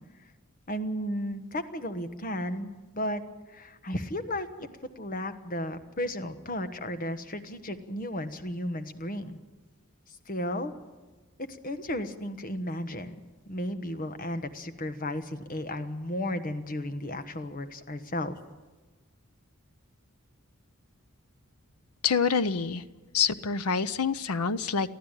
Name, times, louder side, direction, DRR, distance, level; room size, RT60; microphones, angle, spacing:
voice 1, 0.7-2.7 2.9-3.2 3.5-9.4 10.3-10.7 11.5-13.2 13.5-18.4, left 1 dB, 40° left, 9 dB, 1.3 m, -34 dB
voice 2, 22.0-22.8 23.1-24.9, left 6 dB, 90° left, 14 dB, 0.7 m, -26 dB
23.5 x 14.5 x 9.0 m, 1.2 s
head